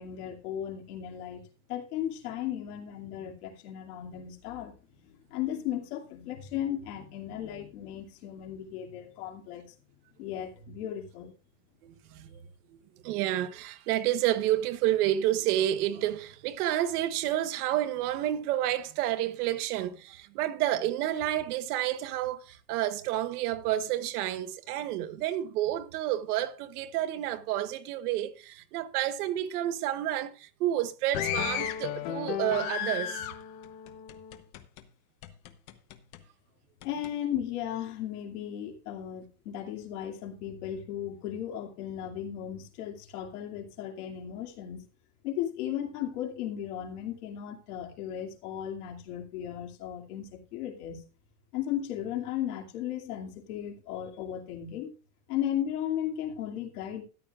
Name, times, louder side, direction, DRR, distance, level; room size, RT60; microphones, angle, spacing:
voice 1, 0.0-1.4 1.7-9.7 10.2-11.3 36.8-44.8 45.2-51.0 51.5-54.9 55.3-57.0, left 10 dB, 70° left, 2.6 m, -36 dB
voice 2, 11.8-12.4 12.7-12.8 13.0-33.2, right 13 dB, 65° right, 1.2 m, -30 dB
sound 1, 31.1-34.8 35.2-36.2 36.8-37.1, left 10 dB, 40° left, 1.0 m, -34 dB
13.5 x 11.5 x 2.4 m
supercardioid pair, 170°, 48 cm